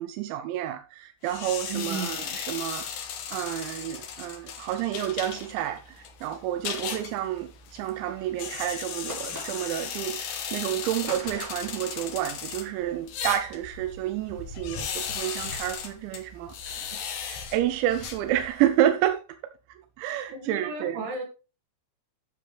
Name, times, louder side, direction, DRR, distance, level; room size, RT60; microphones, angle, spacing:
voice 1, 0.0-16.5 17.2-19.2 20.0-21.0, right 12 dB, 90° right, 3.0 m, -29 dB
sound 1, 1.2-18.7, left 7 dB, 70° left, 1.8 m, -37 dB
voice 2, 1.7-2.3 20.3-21.3, right 4 dB, 65° right, 4.3 m, -34 dB
sound 2, 9.1-9.9 11.1-11.8, equal, 5° right, 1.9 m, -40 dB
10.5 x 6.8 x 3.3 m
omnidirectional pair, 5.1 m